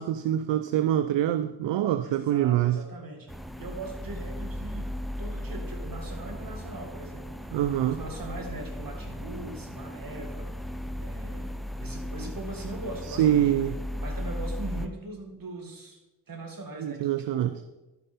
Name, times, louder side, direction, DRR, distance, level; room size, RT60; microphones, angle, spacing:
voice 1, 0.0-2.8 7.5-8.0 13.1-13.8 16.8-17.5, right 11 dB, 70° right, 12 dB, 0.5 m, -25 dB
voice 2, 2.0-4.9 5.2-7.4 7.8-10.6 11.0-13.5 14.0-16.0 16.3-17.5, right 2 dB, 45° right, 3 dB, 2.0 m, -40 dB
sound 1, 3.3-14.9, equal, ahead, 0.6 m, -36 dB
11.5 x 5.4 x 4.2 m, 1.1 s
supercardioid pair, 45°, 46 cm